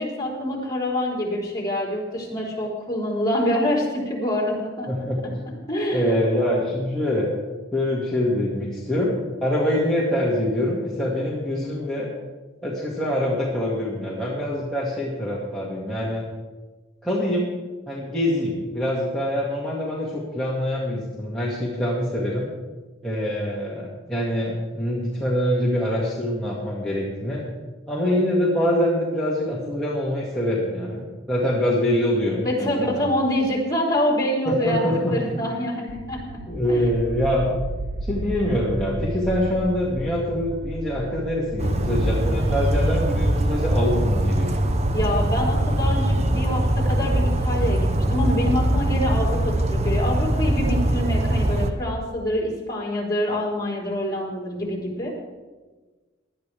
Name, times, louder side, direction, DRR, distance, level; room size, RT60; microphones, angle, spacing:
voice 1, 0.0-4.9 5.7-6.2 32.4-34.8 35.1-36.4 36.7-36.8 44.9-55.2, left 1 dB, 20° left, -4 dB, 4.1 m, -26 dB
voice 2, 4.9-5.2 5.9-7.3 7.7-9.2 9.4-12.1 12.6-16.2 17.0-17.5 17.9-22.5 23.0-27.4 27.9-33.1 34.5-35.2 36.5-37.6 38.1-44.5, left 1 dB, 5° left, -8 dB, 2.1 m, -24 dB
sound 1, 35.9-46.6, right 1 dB, 65° right, 0.7 m, -34 dB
Bird vocalization bird call bird song, 41.6-51.7, right 1 dB, 35° right, 0.8 m, -22 dB
19.0 x 12.0 x 3.5 m, 1.3 s
head